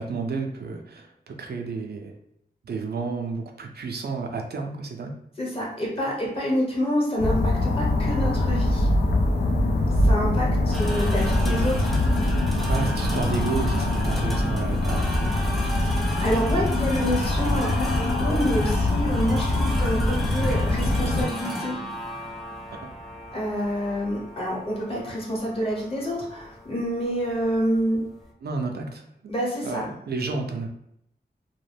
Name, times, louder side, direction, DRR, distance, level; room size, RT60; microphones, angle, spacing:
voice 1, 0.0-2.1 2.6-5.1 12.7-15.4 22.7-22.8 28.4-29.0 29.6-30.7, right 4 dB, 70° right, 3 dB, 0.4 m, -31 dB
voice 2, 5.4-8.9 10.0-12.0 15.7-21.7 23.3-28.0 29.3-29.8, equal, 35° left, -3 dB, 1.0 m, -27 dB
sound 1, 7.2-21.2, left 1 dB, 75° left, 0.5 m, -23 dB
sound 2, 10.7-28.3, equal, ahead, 0.4 m, -36 dB
2.4 x 2.1 x 3.3 m, 0.74 s
wide cardioid pair, 105°, 17 cm